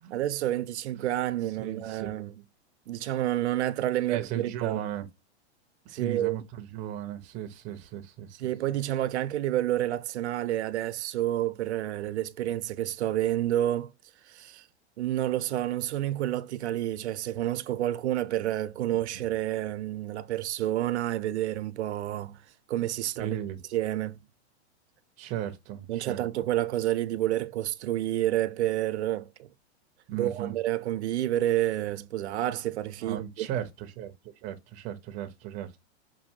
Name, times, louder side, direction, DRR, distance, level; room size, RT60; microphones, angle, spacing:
voice 1, 0.1-2.4 2.9-4.8 5.9-6.4 8.4-13.9 14.3-14.6 15.0-22.4 22.7-23.4 23.7-24.2 25.9-29.5 30.1-33.5, right 13 dB, 85° right, 0.6 m, -29 dB
voice 2, 1.6-2.1 4.1-5.1 5.9-8.5 23.2-23.6 25.2-26.2 30.1-30.6 33.0-35.8, right 11 dB, 20° right, 0.5 m, -36 dB
5.4 x 2.6 x 2.7 m
supercardioid pair, 155°, 33 cm